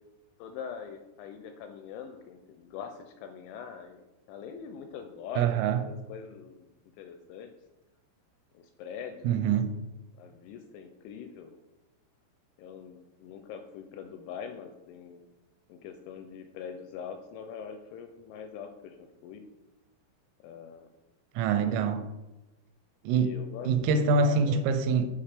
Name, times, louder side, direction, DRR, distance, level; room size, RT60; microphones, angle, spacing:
voice 1, 0.4-6.7 7.0-7.5 8.5-9.3 10.1-11.6 12.6-15.2 15.7-19.4 20.4-20.9 21.7-22.0 23.1-24.6, left 7 dB, 85° left, 2.7 m, -43 dB
voice 2, 5.4-5.8 9.2-9.7 21.4-22.0 23.0-23.3 23.7-25.1, right 5 dB, 90° right, 3.1 m, -25 dB
7.2 x 5.9 x 3.3 m
omnidirectional pair, 5.7 m